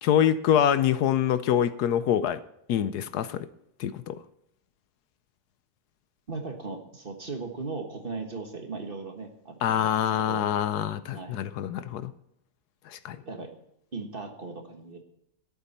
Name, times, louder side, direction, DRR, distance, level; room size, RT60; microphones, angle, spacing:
voice 1, 0.0-2.4 2.7-3.5 3.8-4.2 9.6-12.1 12.9-13.2, left 10 dB, 75° left, 14 dB, 1.1 m, -25 dB
voice 2, 6.3-9.9 10.3-10.4 11.1-11.4 13.2-13.5 13.9-15.0, right 3 dB, 35° right, 4 dB, 1.5 m, -37 dB
12.5 x 11.0 x 4.2 m, 0.76 s
omnidirectional pair, 1.8 m